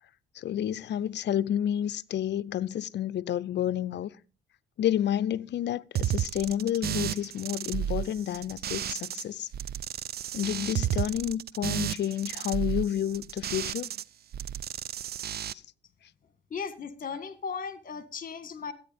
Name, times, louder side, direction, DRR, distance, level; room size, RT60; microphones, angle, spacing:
voice 1, 0.3-4.1 4.8-9.5 10.3-13.9, left 10 dB, 60° left, 0.6 m, -30 dB
sound 1, 5.9-9.2 9.5-14.0 14.3-15.5, right 10 dB, 50° right, 0.6 m, -32 dB
voice 2, 16.5-18.7, left 6 dB, 45° left, 1.8 m, -36 dB
13.5 x 9.3 x 5.2 m
cardioid pair, 90°, 20 cm